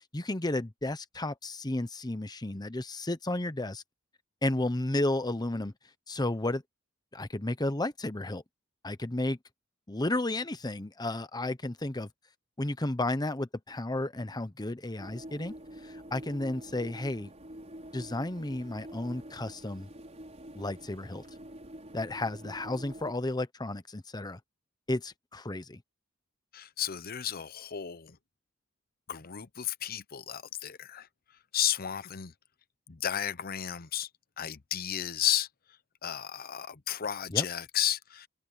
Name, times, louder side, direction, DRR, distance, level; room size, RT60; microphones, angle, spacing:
voice 1, 0.0-3.8 4.4-5.7 6.1-6.6 7.1-8.4 8.8-9.4 9.9-12.1 12.6-15.5 15.8-17.3 17.9-19.9 20.5-21.2 21.9-24.4 24.9-25.8 37.3-37.4, left 1 dB, 20° left, 1.0 m, -32 dB
sound 1, 15.0-23.1, right 1 dB, 35° right, 5.6 m, -47 dB
voice 2, 26.5-28.2 29.1-31.1 31.5-32.3 32.9-34.1 34.4-35.5 36.0-38.3, left 10 dB, 45° left, 0.8 m, -33 dB
head